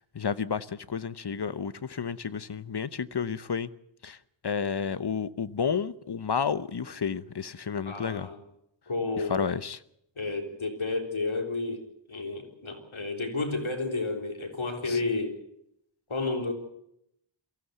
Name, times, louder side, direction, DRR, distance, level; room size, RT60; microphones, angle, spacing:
voice 1, 0.0-3.7 4.0-4.2 4.4-8.3 9.2-9.8 14.8-15.0, left 6 dB, 55° left, 1.0 m, -31 dB
voice 2, 7.9-8.4 8.9-9.4 10.2-11.8 12.1-15.3 16.1-16.5, left 3 dB, 85° left, 3.8 m, -31 dB
22.5 x 16.0 x 8.1 m
wide cardioid pair, 45°, 47 cm